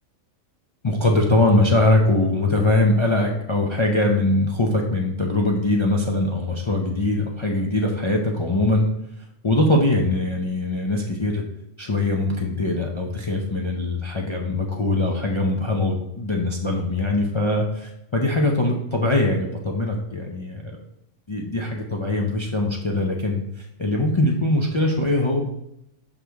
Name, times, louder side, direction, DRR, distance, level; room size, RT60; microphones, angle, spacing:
voice 1, 0.8-8.9 9.2-11.4 11.8-20.8 21.3-25.4, left 2 dB, 35° left, 0 dB, 0.5 m, -22 dB
6.4 x 5.6 x 3.4 m, 0.81 s
omnidirectional pair, 1.3 m